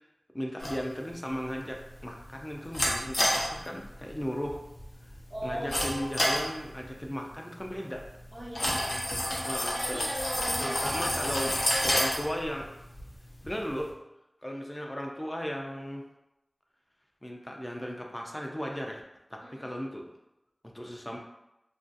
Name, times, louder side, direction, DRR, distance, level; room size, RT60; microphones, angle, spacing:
voice 1, 0.3-4.6 5.4-8.0 9.4-10.1 10.6-11.5 11.8-12.7 13.4-13.9 14.4-16.0 17.2-19.0 19.3-20.1 20.6-21.2, equal, 20° left, 1 dB, 0.3 m, -36 dB
sound 1, 0.6-13.9, left 1 dB, 85° left, 0.5 m, -32 dB
voice 2, 5.3-6.1 8.3-9.0 9.7-10.8 11.1-11.2 11.5-12.2 19.4-19.7, equal, 70° right, -6 dB, 0.8 m, -39 dB
2.5 x 2.2 x 2.5 m, 0.92 s
wide cardioid pair, 45°, 0 cm